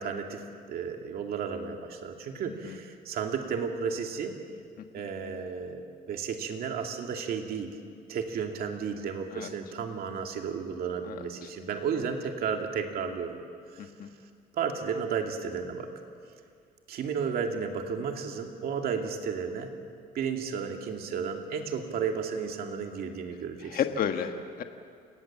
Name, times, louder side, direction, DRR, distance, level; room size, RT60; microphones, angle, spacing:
voice 1, 0.0-4.4 4.9-5.8 6.1-7.7 8.1-13.4 13.7-13.9 14.5-15.9 16.9-19.7 20.1-23.8, right 6 dB, 65° right, 3 dB, 2.5 m, -33 dB
voice 2, 4.8-5.1 9.3-9.5 11.0-11.2 13.8-14.1 23.6-24.6, left 8 dB, 55° left, 6 dB, 1.5 m, -32 dB
28.5 x 18.0 x 7.4 m, 2.3 s
cardioid pair, 110°, 17 cm